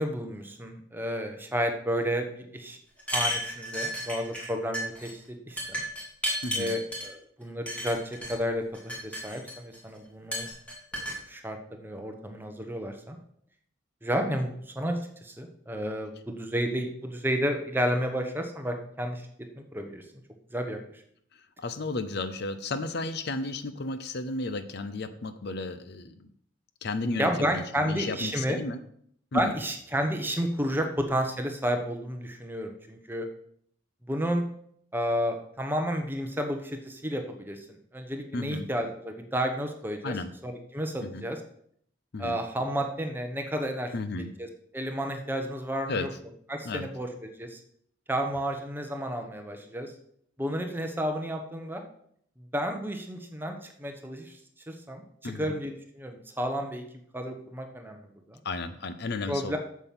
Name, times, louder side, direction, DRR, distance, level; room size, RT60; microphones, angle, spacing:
voice 1, 0.0-2.8 3.1-5.2 5.5-5.8 6.5-8.6 9.0-10.5 10.9-13.2 14.0-14.5 14.7-14.9 15.2-19.2 19.6-20.0 20.5-20.8 27.2-28.6 29.3-33.3 34.1-34.4 34.9-37.6 37.9-40.1 40.4-41.4 42.2-43.9 44.4-44.5 44.7-46.1 46.5-47.6 48.1-49.9 50.4-51.8 52.5-54.3 54.7-56.8 57.1-58.4 59.3-59.6, equal, 10° right, 4 dB, 1.1 m, -31 dB
sound 1, 3.0-4.5 4.7-5.1 5.6-7.1 7.7-8.3 8.7-9.8 10.3-11.2, equal, 5° left, 2.6 m, -32 dB
voice 2, 21.3-26.3 26.8-28.8 29.3-29.5 38.3-38.7 40.0-40.3 41.0-41.2 42.1-42.4 43.9-44.3 45.9-46.1 46.6-46.9 55.2-55.5 58.4-59.6, left 2 dB, 55° left, 11 dB, 0.6 m, -33 dB
8.0 x 7.2 x 5.9 m, 0.66 s
head